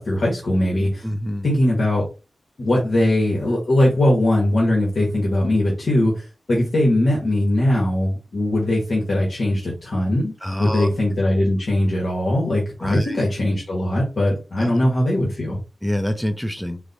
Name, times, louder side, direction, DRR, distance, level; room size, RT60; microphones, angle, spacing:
voice 1, 0.0-1.1 1.4-2.0 2.6-10.3 10.6-15.6, left 1 dB, 75° left, -3 dB, 1.3 m, -20 dB
voice 2, 1.0-1.5 10.4-10.9 12.8-13.2 14.6-14.7 15.8-16.8, equal, 5° left, 9 dB, 0.6 m, -25 dB
4.8 x 2.2 x 4.0 m, 0.31 s
cardioid pair, 65°, 0 cm